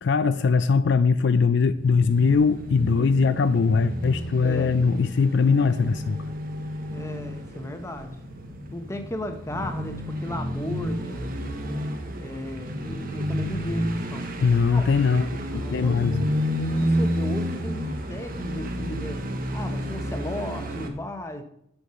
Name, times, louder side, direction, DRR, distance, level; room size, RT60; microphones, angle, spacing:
voice 1, 0.0-6.2 6.6-7.0 14.4-16.3, left 5 dB, 60° left, 12 dB, 0.4 m, -21 dB
sound 1, 1.7-20.9, equal, 45° right, 1.2 m, -30 dB
voice 2, 6.9-8.1 8.7-11.3 12.2-14.3 14.7-14.9 15.5-16.2 16.8-19.2 19.5-21.4, left 1 dB, 15° left, 6 dB, 1.0 m, -35 dB
7.8 x 6.4 x 6.9 m, 0.73 s
head